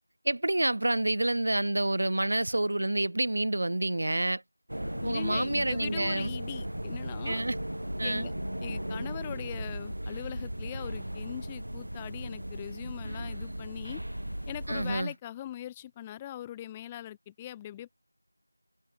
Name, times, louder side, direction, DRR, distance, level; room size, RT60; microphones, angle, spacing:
voice 1, 0.2-4.4 5.0-6.3 7.2-7.5 8.0-8.3 14.7-15.1, right 1 dB, 45° right, 3.0 m, -28 dB
sound 1, 4.7-15.0, right 1 dB, 85° right, 5.5 m, -37 dB
voice 2, 5.0-7.4 8.0-8.3 8.6-14.0 14.5-17.9, left 12 dB, 5° left, 1.8 m, -41 dB
figure-of-eight pair, 175°, 0 cm